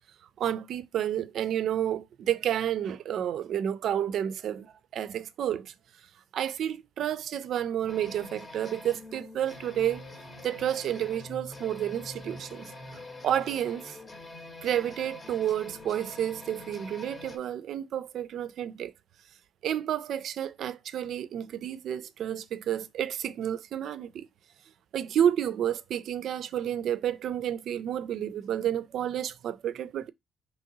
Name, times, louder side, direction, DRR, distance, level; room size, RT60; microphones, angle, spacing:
voice 1, 0.4-5.7 6.3-10.0 10.4-12.7 13.2-14.0 14.6-18.9 19.6-24.3 24.9-30.1, right 10 dB, 70° right, 0.3 m, -30 dB
sound 1, 7.9-17.4, left 2 dB, 40° left, 0.8 m, -45 dB
3.7 x 2.9 x 2.6 m
cardioid pair, 90°, 0 cm